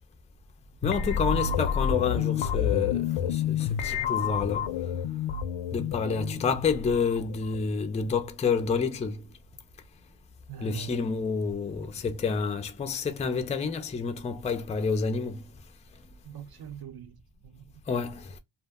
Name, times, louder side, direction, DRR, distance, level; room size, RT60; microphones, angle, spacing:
sound 1, 0.8-7.7, left 8 dB, 80° left, 0.6 m, -29 dB
voice 1, 0.8-3.1 3.5-3.6 3.8-4.6 5.7-9.2 10.6-15.4 17.9-18.2, left 5 dB, 15° left, 0.3 m, -29 dB
voice 2, 10.5-11.2 16.2-17.2 17.4-17.8, right 9 dB, 50° right, 0.6 m, -42 dB
2.3 x 2.1 x 3.4 m
wide cardioid pair, 125°, 49 cm